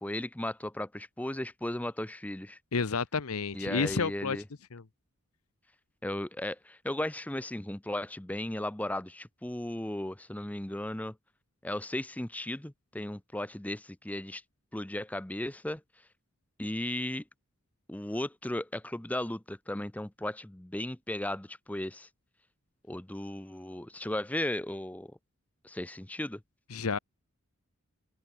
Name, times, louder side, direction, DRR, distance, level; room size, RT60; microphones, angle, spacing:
voice 1, 0.0-2.6 3.5-4.4 6.0-11.1 11.6-14.4 14.7-15.8 16.6-17.2 17.9-22.1 22.9-25.1 25.6-26.4, left 1 dB, 5° left, 0.5 m, -36 dB
voice 2, 2.7-4.4 4.7-4.8 26.7-27.0, left 5 dB, 85° left, 0.9 m, -30 dB
open air
head